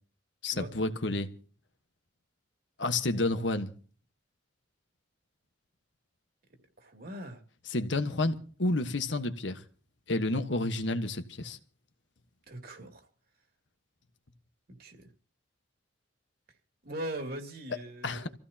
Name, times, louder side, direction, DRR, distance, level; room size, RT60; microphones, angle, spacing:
voice 1, 0.4-1.3 2.8-3.7 7.7-9.6 10.1-11.6 18.0-18.3, left 2 dB, 75° left, 1.4 m, -30 dB
voice 2, 6.8-7.4 12.5-13.1 14.7-15.1 16.8-18.3, right 1 dB, 55° right, 2.7 m, -40 dB
26.5 x 15.5 x 2.9 m
head